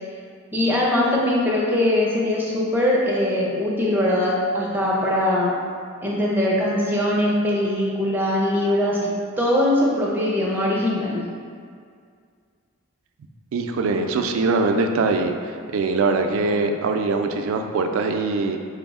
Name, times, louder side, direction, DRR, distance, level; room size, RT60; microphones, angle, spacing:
voice 1, 0.5-5.5 6.0-9.1 9.4-11.2, left 1 dB, 10° right, -5 dB, 0.4 m, -21 dB
voice 2, 13.5-18.6, right 3 dB, 75° right, 6 dB, 0.3 m, -22 dB
4.4 x 2.0 x 3.5 m, 2.2 s
head